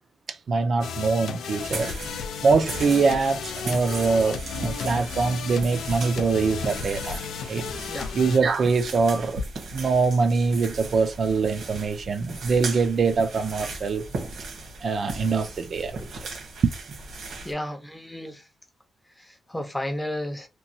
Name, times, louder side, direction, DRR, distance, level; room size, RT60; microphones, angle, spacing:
voice 1, 0.3-7.7 8.1-9.4 9.7-14.1 14.8-16.1 16.6-16.7, right 4 dB, 50° right, 0.4 m, -23 dB
sound 1, 0.8-8.4, left 6 dB, 90° left, 0.4 m, -34 dB
cave footsteps, 1.6-17.5, right 3 dB, 80° right, 1.1 m, -37 dB
voice 2, 17.4-18.5 19.2-20.5, left 1 dB, 10° left, 0.6 m, -33 dB
3.0 x 2.2 x 2.6 m
cardioid pair, 120°, 0 cm